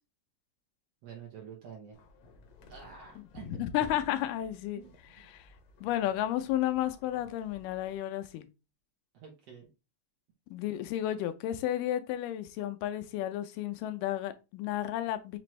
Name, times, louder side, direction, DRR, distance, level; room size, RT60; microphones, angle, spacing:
voice 1, 1.0-2.0 2.7-3.6 3.9-4.0 4.7-5.3 9.1-9.7, right 7 dB, 65° right, 1.6 m, -48 dB
sound 1, 1.9-8.0, left 2 dB, 70° left, 1.7 m, -56 dB
voice 2, 3.5-4.8 5.3-5.5 5.8-8.5 10.5-15.4, left 12 dB, 85° left, 2.2 m, -32 dB
5.9 x 2.5 x 3.1 m
omnidirectional pair, 3.7 m